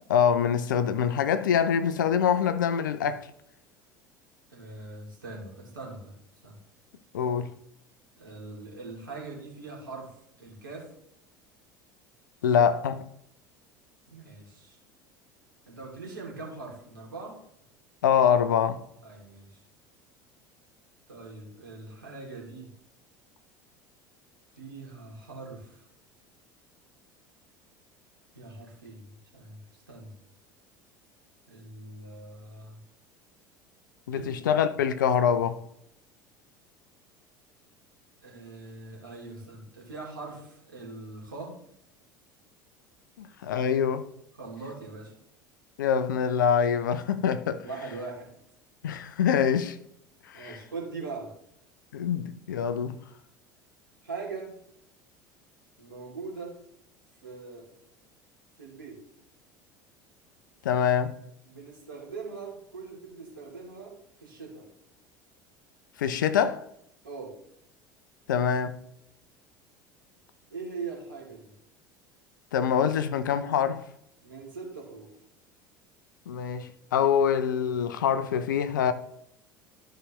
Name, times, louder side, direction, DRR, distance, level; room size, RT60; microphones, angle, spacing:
voice 1, 0.1-3.3 7.1-7.5 12.4-13.1 18.0-18.8 34.1-35.6 43.2-44.1 45.8-47.6 48.8-49.8 50.3-50.6 51.9-53.0 60.6-61.1 66.0-66.7 68.3-68.8 72.5-73.8 76.3-78.9, left 8 dB, 70° left, 0.7 m, -25 dB
voice 2, 4.5-6.1 6.4-6.6 8.1-10.1 10.4-10.9 14.1-14.8 15.7-17.4 19.0-19.6 21.1-22.7 24.5-25.9 28.3-30.1 31.5-32.8 34.1-34.5 38.2-41.6 44.4-45.2 47.6-48.3 50.3-51.3 54.0-54.6 55.8-56.6 57.2-57.7 58.6-59.0 61.4-64.6 67.0-67.4 70.5-71.5 74.2-75.1, right 3 dB, 80° right, 2.8 m, -41 dB
12.5 x 5.1 x 3.0 m
figure-of-eight pair, 70°, 11 cm